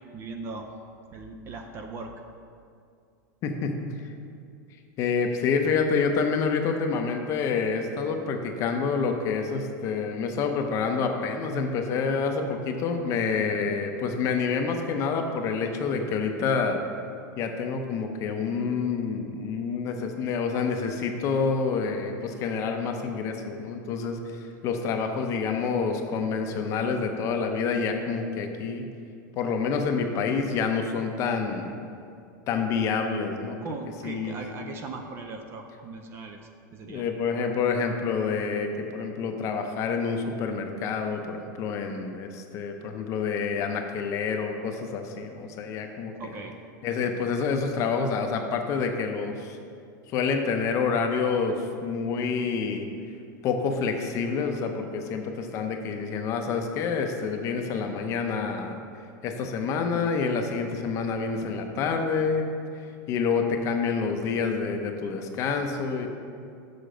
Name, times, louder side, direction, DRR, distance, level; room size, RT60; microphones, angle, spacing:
voice 1, 0.1-0.7 1.1-2.1 33.6-36.4 36.7-37.0 46.2-46.6, right 3 dB, 25° right, 4 dB, 0.4 m, -38 dB
voice 2, 3.4-3.9 5.0-16.8 17.4-28.9 29.4-31.8 32.5-33.6 34.0-34.4 36.8-46.4 46.8-49.6 50.1-52.9 53.4-58.8 59.2-62.5 63.1-66.1, left 5 dB, 30° left, 4 dB, 0.6 m, -28 dB
6.8 x 6.6 x 5.1 m, 2.4 s
supercardioid pair, 165°, 10 cm